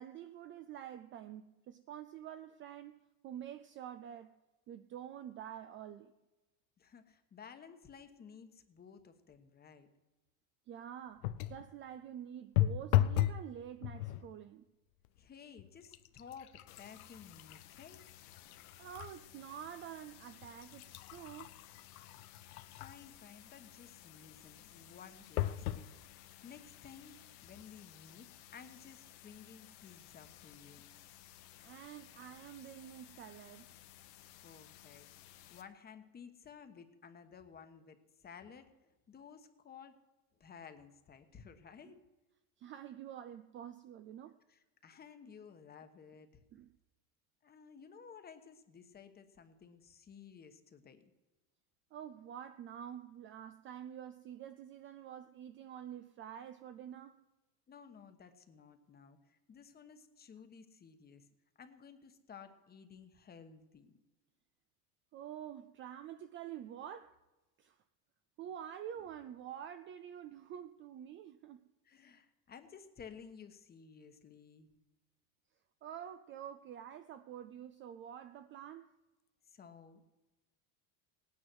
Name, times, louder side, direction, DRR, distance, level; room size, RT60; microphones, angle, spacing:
voice 1, 0.0-4.3 4.7-6.1 10.7-14.7 18.8-21.5 31.6-33.7 42.6-44.4 46.5-46.7 51.9-57.2 65.1-67.2 67.6-67.8 68.4-71.7 75.8-78.9, right 10 dB, 30° right, 0.4 m, -48 dB
voice 2, 6.8-9.9 15.2-18.0 22.8-30.8 34.4-40.0 40.4-42.0 44.5-46.4 47.4-51.0 57.7-61.3 61.6-63.9 71.8-74.7 79.5-80.1, left 6 dB, 20° left, 1.1 m, -55 dB
sound 1, 11.2-11.7 12.6-13.5 13.8-14.3 15.0-15.2 15.6-19.2 19.6-19.7 20.4-23.1 25.4-25.9 26.6-26.7 26.9-27.0, left 13 dB, 90° left, 0.8 m, -35 dB
sound 2, 16.7-35.6, left 13 dB, 60° left, 1.3 m, -57 dB
17.5 x 9.7 x 6.2 m
supercardioid pair, 140°, 42 cm